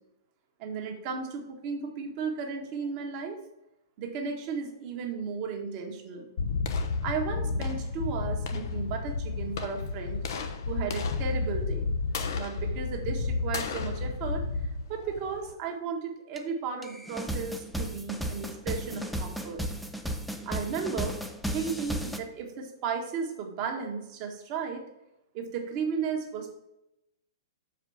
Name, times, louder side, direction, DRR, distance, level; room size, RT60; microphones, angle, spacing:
voice 1, 0.6-3.4 4.0-6.3 7.0-10.2 10.7-11.9 12.3-14.5 14.9-19.6 20.4-21.2 21.5-24.8 25.3-26.6, right 5 dB, 40° right, 2 dB, 1.5 m, -34 dB
sound 1, 6.4-15.5, left 4 dB, 60° left, 0.8 m, -31 dB
sound 2, 16.4-16.5 16.8-22.2, right 1 dB, ahead, 0.6 m, -34 dB
6.5 x 5.0 x 4.8 m, 0.90 s
figure-of-eight pair, 110°, 2 cm